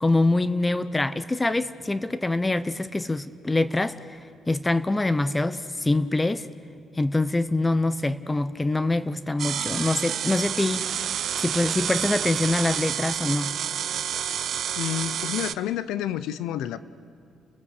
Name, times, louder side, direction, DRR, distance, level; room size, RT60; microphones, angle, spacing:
voice 1, 0.0-6.5 6.9-10.8 11.4-13.6, left 2 dB, 15° left, 15 dB, 0.7 m, -25 dB
sound 1, 9.4-15.5, right 9 dB, 65° right, 0.6 m, -29 dB
voice 2, 14.8-16.8, left 11 dB, 85° left, 15 dB, 0.8 m, -29 dB
30.0 x 16.0 x 8.1 m, 2.5 s
cardioid pair, 85°, 0 cm